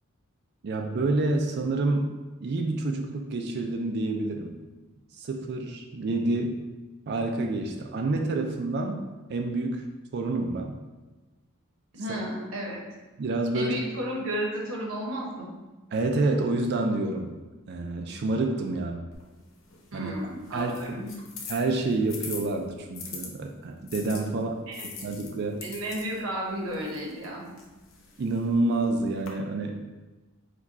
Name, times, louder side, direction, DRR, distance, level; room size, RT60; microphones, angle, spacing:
voice 1, 0.6-2.1 2.4-4.6 5.2-6.7 7.1-9.0 9.3-9.9 10.1-10.8 13.2-13.8 15.9-17.3 17.7-19.0 19.9-20.1 20.5-20.7 21.5-24.5 25.0-25.7 28.2-29.8, right 2 dB, 50° right, 3 dB, 0.4 m, -28 dB
voice 2, 11.9-12.8 13.5-15.5 19.9-21.1 24.7-24.9 25.6-27.5, equal, 65° right, -2 dB, 1.0 m, -33 dB
sound 1, 19.1-23.3 23.9-29.3, left 5 dB, 65° left, 0.7 m, -44 dB
4.8 x 2.3 x 4.1 m, 1.2 s
head